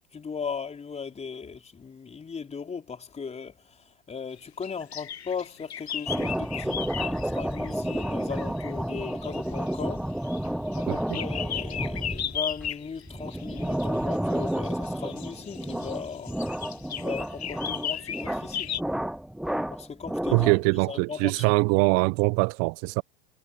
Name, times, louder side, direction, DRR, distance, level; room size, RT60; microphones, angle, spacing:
voice 1, 0.1-10.1 10.7-16.4 16.9-18.7 19.7-21.5, left 6 dB, 20° left, 4.6 m, -38 dB
sound 1, 4.4-18.8, left 9 dB, 85° left, 1.3 m, -37 dB
sound 2, 6.1-20.8, right 1 dB, ahead, 0.6 m, -31 dB
voice 2, 10.9-11.2 20.3-23.0, right 30 dB, 50° right, 1.0 m, -23 dB
hypercardioid pair, 90°, 31 cm